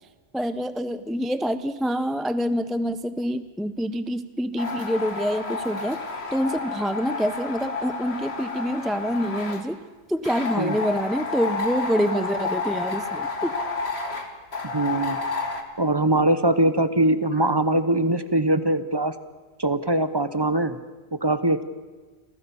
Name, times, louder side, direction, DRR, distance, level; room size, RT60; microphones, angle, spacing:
voice 1, 0.3-6.0 6.3-9.8 10.1-13.5, equal, ahead, 11 dB, 0.4 m, -26 dB
sound 1, 4.6-9.6 10.2-15.6, left 4 dB, 80° left, 2.1 m, -30 dB
voice 2, 14.7-15.2 15.8-19.1 19.6-20.8 21.1-21.6, right 1 dB, 25° right, 12 dB, 0.8 m, -22 dB
27.0 x 15.5 x 7.0 m, 1.4 s
omnidirectional pair, 1.1 m